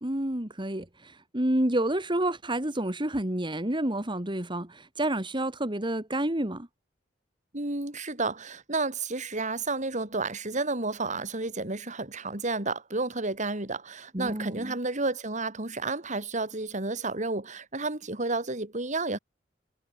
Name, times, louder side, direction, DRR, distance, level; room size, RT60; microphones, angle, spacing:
voice 1, 0.0-6.7 14.1-14.8, right 1 dB, 25° right, 2.9 m, -29 dB
voice 2, 7.5-19.2, right 3 dB, 40° right, 3.6 m, -31 dB
head